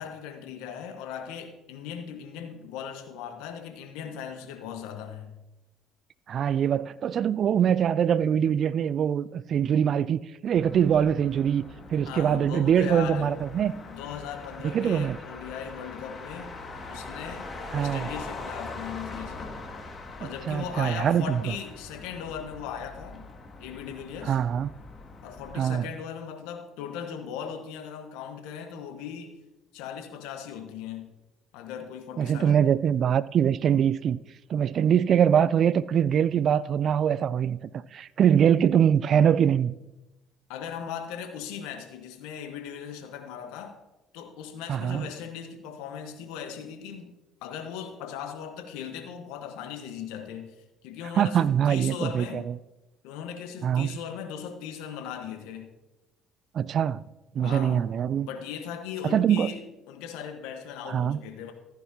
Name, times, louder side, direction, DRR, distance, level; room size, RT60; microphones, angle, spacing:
voice 1, 0.0-5.3 12.0-13.4 13.9-16.5 16.9-19.5 20.2-23.3 23.6-24.4 25.2-29.4 29.7-31.1 31.5-32.6 40.5-43.8 44.1-47.1 47.4-50.6 50.8-52.4 53.0-55.7 57.4-57.9 58.2-59.6 59.9-61.5, left 8 dB, 75° left, 1.2 m, -38 dB
voice 2, 6.3-11.6 11.9-13.7 14.6-15.2 17.7-18.1 20.5-21.4 24.3-24.7 25.6-25.9 32.2-34.2 34.5-39.7 44.7-45.0 51.2-52.5 53.6-53.9 56.5-57.0 57.4-58.3 59.0-59.5 60.9-61.2, right 8 dB, 50° right, 0.3 m, -23 dB
Motor vehicle (road), 10.6-25.5, left 3 dB, 35° left, 2.0 m, -42 dB
14.5 x 9.8 x 2.8 m
hypercardioid pair, 60°, 0 cm